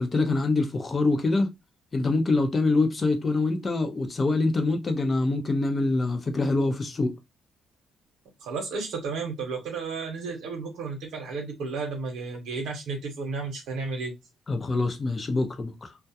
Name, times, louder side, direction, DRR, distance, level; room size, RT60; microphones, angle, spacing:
voice 1, 0.0-1.5 1.9-7.1 14.5-15.9, left 3 dB, 35° left, 0.6 m, -25 dB
voice 2, 8.4-14.1, right 4 dB, 85° right, 0.8 m, -33 dB
2.3 x 2.1 x 2.7 m
cardioid pair, 90°, 0 cm